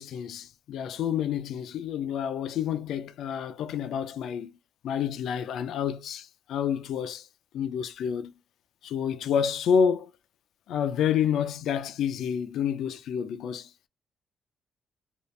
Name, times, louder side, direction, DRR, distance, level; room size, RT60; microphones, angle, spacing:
voice 1, 0.0-4.6 4.8-7.3 7.5-8.3 8.8-10.1 10.7-13.7, left 8 dB, 85° left, 0.4 m, -29 dB
2.7 x 2.4 x 3.1 m
cardioid pair, 145°, 0 cm